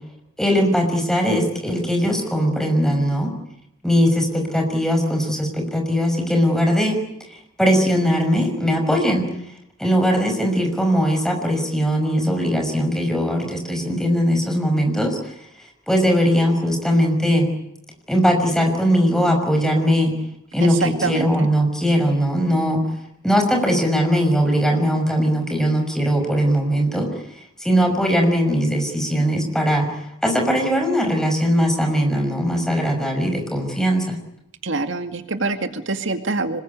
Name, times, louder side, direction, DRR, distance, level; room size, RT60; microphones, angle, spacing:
voice 1, 0.4-3.3 3.8-7.0 7.6-9.3 9.8-15.2 15.9-17.5 18.1-20.1 20.5-22.8 23.2-27.1 27.6-29.9 30.2-34.2, equal, 5° left, 3 dB, 5.8 m, -20 dB
voice 2, 20.6-21.5 34.6-36.6, right 3 dB, 70° right, 7 dB, 2.1 m, -25 dB
26.0 x 21.0 x 9.6 m, 0.80 s
head